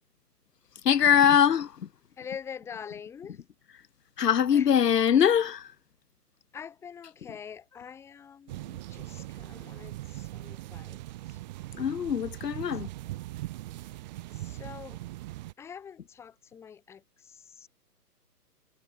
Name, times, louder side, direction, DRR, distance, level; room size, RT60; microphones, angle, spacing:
voice 1, 0.8-1.9 4.2-5.7 11.7-12.9, left 8 dB, 90° left, 1.0 m, -22 dB
voice 2, 2.2-3.4 4.5-4.7 6.5-11.0 11.3-11.4 12.6-12.7 13.1-13.2 13.7-13.9 14.3-15.0 15.6-17.7, left 7 dB, 5° left, 1.6 m, -45 dB
sound 1, 8.5-15.5, right 17 dB, 25° right, 3.2 m, -40 dB
hypercardioid pair, 160°, 47 cm